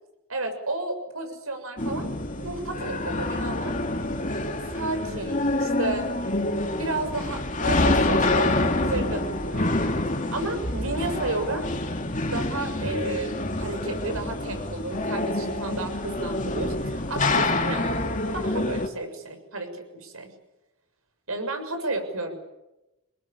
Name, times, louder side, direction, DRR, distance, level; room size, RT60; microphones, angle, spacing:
voice 1, 0.3-3.8 4.5-6.1 6.7-9.7 10.3-11.7 12.3-17.9 18.3-20.3 21.3-22.4, right 2 dB, 80° right, 6 dB, 6.8 m, -32 dB
sound 1, 1.8-18.9, left 2 dB, 35° left, 2.7 m, -27 dB
28.0 x 21.5 x 8.6 m, 0.94 s
head